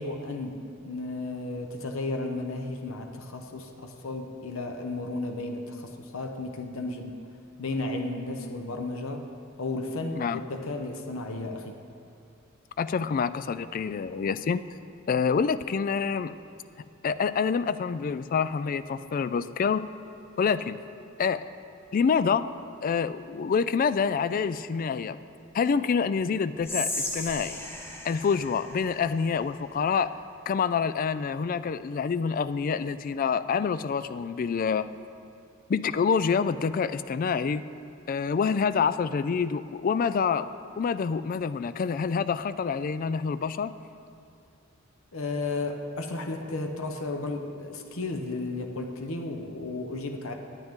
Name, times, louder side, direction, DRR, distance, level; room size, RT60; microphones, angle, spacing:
voice 1, 0.0-7.2 7.6-9.3 9.6-11.8 45.1-50.3, left 2 dB, 90° left, 4 dB, 0.9 m, -33 dB
voice 2, 12.8-14.6 15.1-16.4 17.0-19.9 20.4-20.8 21.2-21.5 21.9-22.5 22.8-25.2 25.5-27.6 28.0-30.1 30.5-34.9 35.7-37.6 38.1-40.5 40.8-43.7, left 6 dB, 45° left, 14 dB, 0.3 m, -27 dB
Whispering, 26.6-29.8, left 2 dB, 10° left, 1.1 m, -36 dB
18.5 x 9.2 x 3.6 m, 2.5 s
head